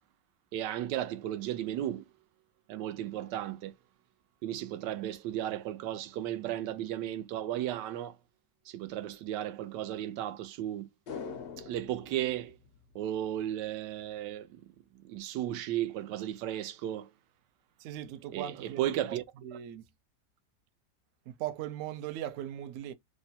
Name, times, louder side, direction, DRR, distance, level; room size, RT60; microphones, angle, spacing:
voice 1, 0.5-2.0 2.7-3.7 4.4-8.2 8.7-10.9 11.6-12.6 12.9-14.6 14.9-17.1 18.3-19.2, right 12 dB, 85° right, 1.2 m, -35 dB
sound 1, 11.1-13.5 13.8-13.9, left 6 dB, 70° left, 0.5 m, -44 dB
voice 2, 17.8-18.8 19.1-19.9 21.4-22.9, right 11 dB, 70° right, 0.7 m, -39 dB
3.1 x 2.2 x 4.0 m
omnidirectional pair, 1.8 m